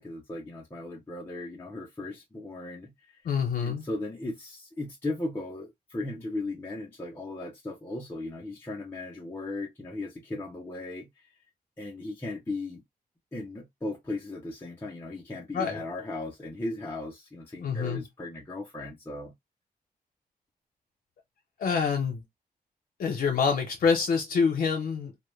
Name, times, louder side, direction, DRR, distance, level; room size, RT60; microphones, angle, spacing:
voice 1, 0.0-3.2 3.6-11.3 11.8-12.8 13.3-19.3, left 2 dB, 15° left, 0.5 m, -37 dB
voice 2, 3.2-3.8 15.5-15.8 17.6-18.0 21.6-22.2 23.0-25.2, left 5 dB, 65° left, 0.6 m, -26 dB
2.1 x 2.1 x 3.0 m
wide cardioid pair, 145°, 16 cm